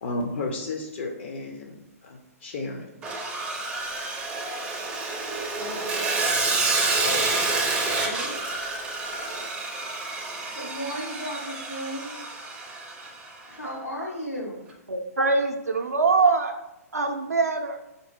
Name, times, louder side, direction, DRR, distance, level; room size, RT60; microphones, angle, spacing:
voice 1, 0.0-2.9 7.1-7.2, left 2 dB, 45° left, 2 dB, 0.4 m, -33 dB
Sawing, 3.0-13.3, right 3 dB, 15° right, 0.4 m, -28 dB
voice 2, 5.6-6.3 7.0-8.4 10.5-12.1 13.5-14.6, equal, 90° left, -6 dB, 0.8 m, -36 dB
voice 3, 14.9-16.5 16.9-17.8, right 4 dB, 75° right, 4 dB, 0.4 m, -23 dB
4.3 x 2.6 x 2.7 m, 0.88 s
figure-of-eight pair, 115°, 8 cm